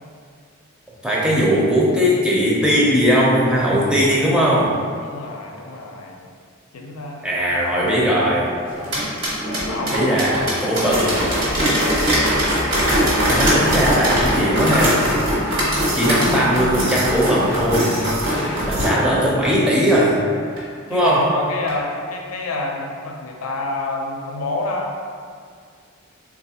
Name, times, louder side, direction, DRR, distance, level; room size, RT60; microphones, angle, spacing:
voice 1, 1.0-4.7 7.2-8.5 9.9-11.2 13.3-15.0 15.9-18.0 18.6-20.2 20.9-21.3, equal, 5° right, -6 dB, 0.5 m, -18 dB
voice 2, 5.0-6.2 6.7-7.2 9.7-10.9 20.9-25.0, left 2 dB, 85° left, 0 dB, 0.5 m, -29 dB
sound 1, 8.7-18.9 19.4-19.5 19.9-20.0 20.6-20.7 21.1-21.2 21.7-21.8, equal, 65° right, 1.3 m, -21 dB
3.9 x 2.4 x 2.8 m, 2.1 s
head